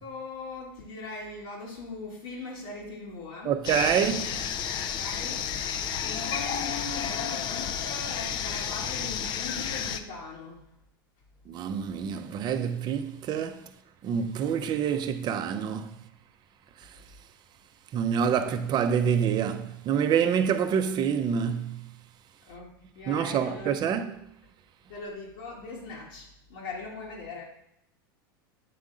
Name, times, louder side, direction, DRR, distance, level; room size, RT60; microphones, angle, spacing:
voice 1, 0.0-3.5 5.0-10.7 22.4-24.0 24.9-27.4, left 3 dB, 65° left, 1.6 m, -40 dB
voice 2, 3.5-4.4 11.5-13.6 14.0-15.9 17.9-21.8 23.1-24.1, right 8 dB, 35° right, 0.6 m, -27 dB
sound 1, 3.6-10.0, left 8 dB, 40° left, 0.5 m, -31 dB
8.5 x 3.6 x 3.9 m
hypercardioid pair, 110°, 12 cm